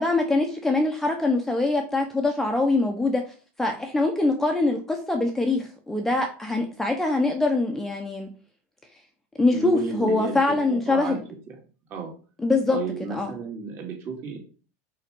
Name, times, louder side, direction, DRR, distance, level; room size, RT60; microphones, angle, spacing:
voice 1, 0.0-3.2 3.6-8.3 9.4-11.2 12.4-12.8 13.1-13.3, left 2 dB, 5° left, 2 dB, 0.9 m, -23 dB
voice 2, 9.5-11.2 11.5-11.6 11.9-12.1 12.7-14.4, right 4 dB, 35° right, 2 dB, 2.5 m, -33 dB
5.7 x 4.8 x 6.1 m, 0.37 s
supercardioid pair, 155°, 7 cm